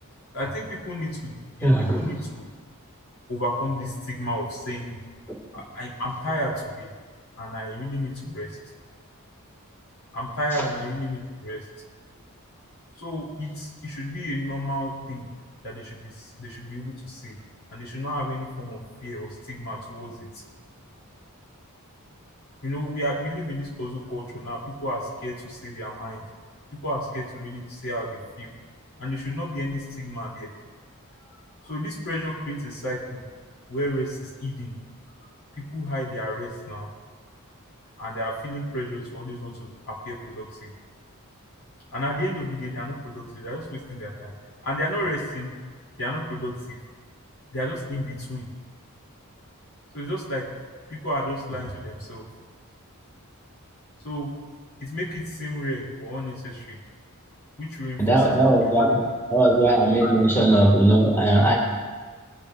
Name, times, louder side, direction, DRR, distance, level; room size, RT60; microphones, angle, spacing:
voice 1, 0.3-2.5 3.3-4.9 5.5-6.9 7.4-8.6 10.1-11.7 13.0-15.3 15.6-17.4 17.7-20.3 22.6-26.2 26.7-28.5 29.0-30.5 31.6-33.2 33.7-34.7 35.5-36.9 38.0-40.7 41.9-44.3 44.6-45.5 46.0-46.8 47.5-48.5 49.9-50.4 50.9-52.2 54.0-54.3 54.8-56.8 57.6-58.7 60.0-60.1, equal, 70° left, -3 dB, 3.3 m, -32 dB
voice 2, 1.6-2.0 58.0-59.0 59.3-61.5, right 1 dB, 10° left, -2 dB, 2.3 m, -18 dB
20.5 x 10.5 x 2.7 m, 1.5 s
head